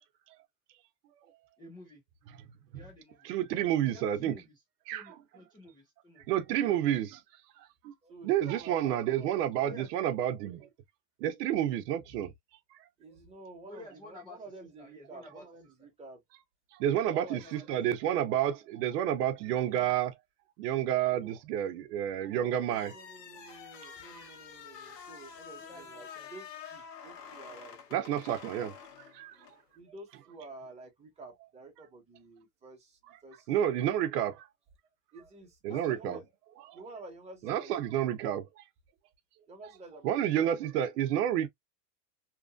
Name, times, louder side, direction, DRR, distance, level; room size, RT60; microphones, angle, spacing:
voice 1, 1.6-2.0 2.7-4.6 4.9-6.3 9.6-9.9 13.7-14.4 14.8-15.4 17.3-17.6 25.6-26.3 35.7-36.2, left 2 dB, 10° left, 0.4 m, -50 dB
voice 2, 3.2-4.4 4.9-5.2 6.3-7.2 7.6-7.9 8.2-10.7 11.2-12.3 16.8-20.1 20.6-22.9 27.9-28.7 29.1-29.3 33.5-34.5 35.6-36.2 37.5-38.4 40.0-41.5, right 11 dB, 75° right, 0.7 m, -30 dB
voice 3, 6.6-7.0 8.0-9.3 13.0-16.2 17.0-17.4 19.4-19.9 21.1-21.4 22.3-28.7 29.3-33.6 35.1-36.2 36.7-38.4 39.5-40.7, right 2 dB, 15° right, 1.1 m, -50 dB
sound 1, 22.6-29.6, left 7 dB, 80° left, 1.2 m, -48 dB
2.9 x 2.5 x 2.3 m
supercardioid pair, 150°, 49 cm